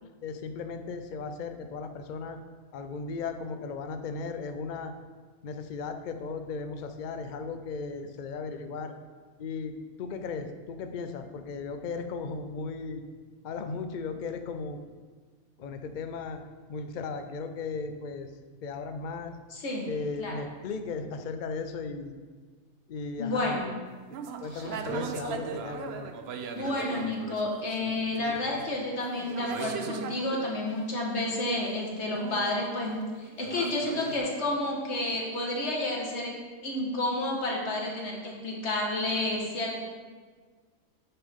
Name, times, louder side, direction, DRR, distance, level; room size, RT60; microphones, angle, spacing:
voice 1, 0.0-2.4 2.7-4.9 5.4-8.9 9.4-13.0 13.4-14.8 15.6-16.4 16.7-18.3 18.6-19.3 19.9-22.2 22.9-23.6 24.1-26.1, left 4 dB, 85° left, 7 dB, 0.4 m, -36 dB
voice 2, 19.5-19.9 20.2-20.3 23.2-23.7 24.5-24.7 26.5-36.3 36.6-39.8, left 2 dB, 50° left, -1 dB, 1.7 m, -30 dB
sound 1, 24.1-30.6 32.0-34.2, right 6 dB, 65° right, 0.7 m, -39 dB
8.8 x 6.9 x 3.6 m, 1.5 s
omnidirectional pair, 1.5 m